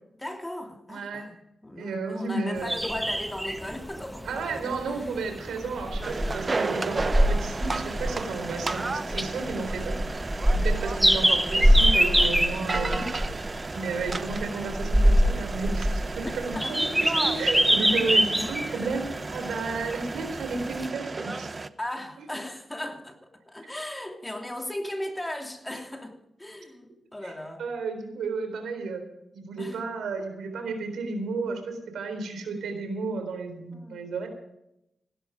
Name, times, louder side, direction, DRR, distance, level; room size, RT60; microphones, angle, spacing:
voice 1, 0.2-5.1 6.6-6.9 9.8-10.0 14.8-15.0 16.2-16.8 21.8-27.6 29.6-29.8 33.7-34.1, left 1 dB, 15° left, 2.9 m, -37 dB
voice 2, 0.9-1.3 1.8-2.8 4.2-10.2 10.5-13.1 13.7-21.5 27.2-27.3 27.6-29.0 29.3-34.3, right 3 dB, 90° right, 3.8 m, -32 dB
sound 1, 2.6-20.9, equal, 10° right, 1.1 m, -25 dB
sound 2, 6.0-21.7, right 3 dB, 40° right, 0.8 m, -34 dB
16.0 x 12.5 x 5.1 m
cardioid pair, 60°, 0 cm